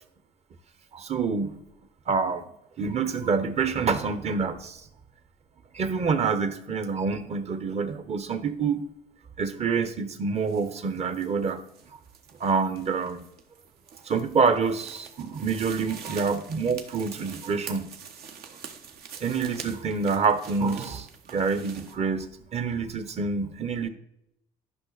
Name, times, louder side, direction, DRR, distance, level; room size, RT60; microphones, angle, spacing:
voice 1, 0.9-1.6 2.1-2.5 2.8-4.8 5.7-8.8 9.4-11.6 12.4-13.2 14.0-17.9 19.2-23.9, right 5 dB, 40° right, 11 dB, 1.0 m, -27 dB
sound 1, 10.4-22.0, right 7 dB, 70° right, 1.2 m, -45 dB
11.0 x 5.8 x 4.1 m, 0.80 s
cardioid pair, 110°, 17 cm